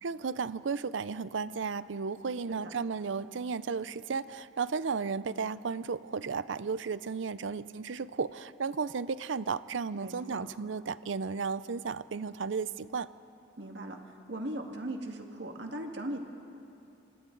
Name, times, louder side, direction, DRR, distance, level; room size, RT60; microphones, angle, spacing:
voice 1, 0.0-13.1, right 5 dB, 85° right, 16 dB, 0.5 m, -34 dB
voice 2, 9.9-10.4 13.6-14.0 14.3-16.2, right 1 dB, 70° right, 3 dB, 1.9 m, -38 dB
27.5 x 25.0 x 4.0 m, 2.7 s
head